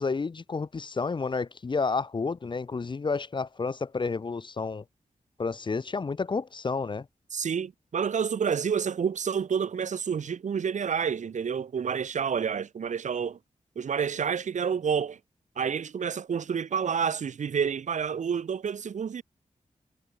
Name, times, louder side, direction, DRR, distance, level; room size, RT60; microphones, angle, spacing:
voice 1, 0.0-4.8 5.4-7.1, left 4 dB, 40° left, 0.6 m, -30 dB
voice 2, 7.3-13.4 13.8-15.2 15.6-19.2, right 7 dB, 75° right, 1.6 m, -29 dB
cardioid pair, 50°, 13 cm